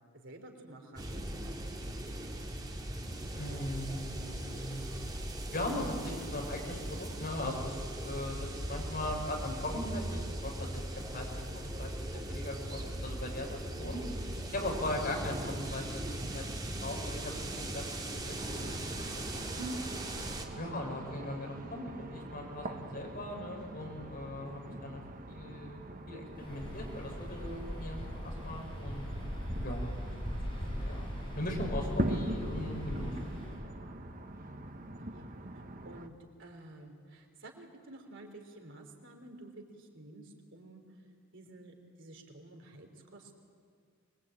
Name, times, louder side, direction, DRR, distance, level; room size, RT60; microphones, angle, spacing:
voice 1, 0.1-1.8 14.7-14.9 20.6-20.8 35.1-35.3 35.9-36.1 36.4-40.8 41.3-43.4, right 2 dB, 65° right, 3 dB, 3.6 m, -51 dB
sound 1, 1.0-20.5, right 1 dB, 20° right, 2.3 m, -39 dB
voice 2, 3.4-5.1 5.5-10.8 11.1-14.0 14.4-16.4 16.8-18.9 19.3-19.8 20.6-25.8 26.1-29.0 29.6-30.0 30.5-31.1 31.3-33.1 33.6-33.8, left 1 dB, 45° left, 1 dB, 5.8 m, -39 dB
sound 2, 18.3-36.1, right 1 dB, 45° right, 1.4 m, -42 dB
Waves surf, 26.3-33.6, equal, 25° left, 7.6 m, -39 dB
24.5 x 22.0 x 8.9 m, 2.1 s
head